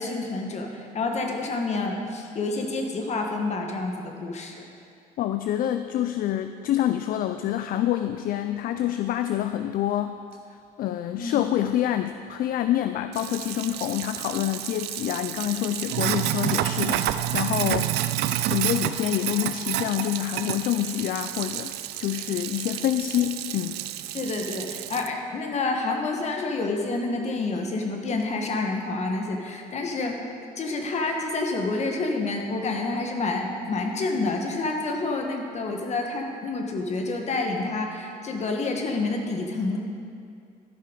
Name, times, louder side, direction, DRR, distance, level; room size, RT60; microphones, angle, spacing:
voice 1, 0.0-4.6 11.1-11.4 24.1-30.2 30.6-39.8, left 3 dB, 40° left, 3 dB, 1.4 m, -28 dB
voice 2, 5.2-10.1 10.8-18.0 18.5-23.8, left 12 dB, 60° left, 9 dB, 0.4 m, -27 dB
Sink (filling or washing), 13.1-25.1, right 13 dB, 75° right, 0.4 m, -29 dB
13.0 x 5.7 x 5.2 m, 2.4 s
cardioid pair, 110°, 17 cm